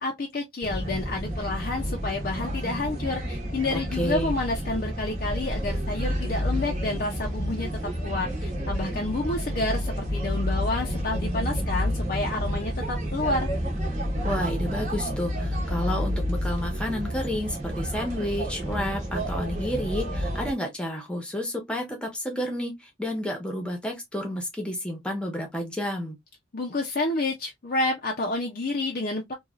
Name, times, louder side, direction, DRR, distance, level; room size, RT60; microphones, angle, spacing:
voice 1, 0.0-7.7 8.0-13.5 26.5-29.3, left 2 dB, 45° left, 0.5 m, -29 dB
sound 1, 0.6-20.5, equal, 40° right, 0.9 m, -30 dB
voice 2, 3.7-4.3 14.2-26.2, equal, 5° left, 0.9 m, -31 dB
3.1 x 2.3 x 2.3 m
head